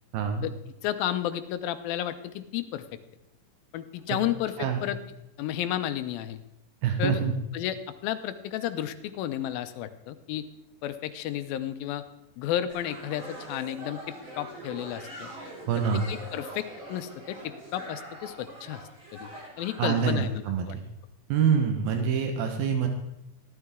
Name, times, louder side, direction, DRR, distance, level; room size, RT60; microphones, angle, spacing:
voice 1, 0.1-0.5 4.1-4.2 4.6-4.8 6.8-7.3 15.7-16.0 19.8-20.8 21.3-22.9, right 7 dB, 85° right, 4 dB, 3.0 m, -26 dB
voice 2, 0.8-2.9 3.7-5.0 5.4-6.4 7.0-7.2 7.5-7.8 8.0-10.5 10.8-12.0 12.4-15.3 15.9-18.8 19.1-19.3 19.6-20.8, left 11 dB, 90° left, 11 dB, 2.5 m, -32 dB
sound 1, 12.7-20.2, right 1 dB, 40° right, 6.5 m, -43 dB
15.0 x 12.5 x 3.7 m, 0.86 s
omnidirectional pair, 4.1 m